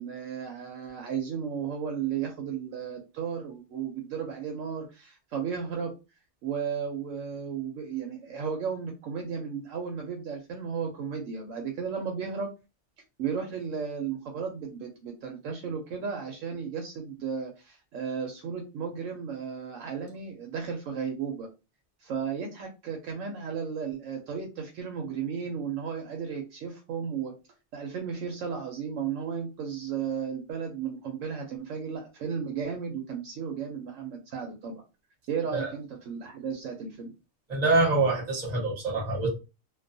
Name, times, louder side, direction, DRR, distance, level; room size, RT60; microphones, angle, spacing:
voice 1, 0.0-5.9 6.4-12.5 13.2-21.5 22.0-27.3 27.7-34.7 35.3-37.1, right 6 dB, 70° right, 0.9 m, -34 dB
voice 2, 37.5-39.3, right 3 dB, 35° right, 0.9 m, -25 dB
2.3 x 2.3 x 2.5 m
omnidirectional pair, 1.4 m